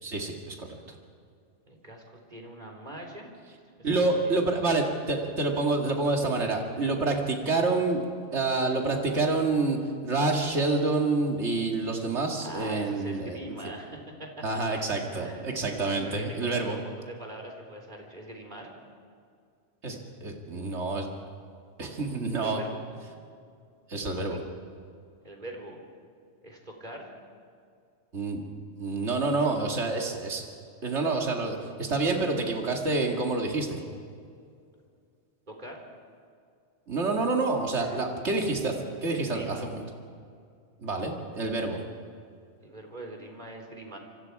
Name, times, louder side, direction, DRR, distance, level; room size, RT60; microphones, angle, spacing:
voice 1, 0.0-0.7 3.8-8.0 8.3-9.8 10.0-13.5 14.4-16.8 19.8-21.1 21.8-22.6 23.9-24.4 28.1-28.4 28.7-30.4 30.8-33.8 36.9-39.8 40.8-41.8, right 3 dB, 70° right, 1 dB, 2.5 m, -28 dB
voice 2, 1.7-3.3 3.8-4.4 12.4-14.4 15.1-18.7 22.3-22.8 24.1-24.4 25.2-25.8 26.4-27.2 29.4-29.5 35.5-35.8 37.8-38.0 39.1-39.6 42.6-44.0, right 1 dB, 40° right, 2 dB, 3.9 m, -43 dB
27.0 x 24.5 x 4.8 m, 2.3 s
omnidirectional pair, 1.2 m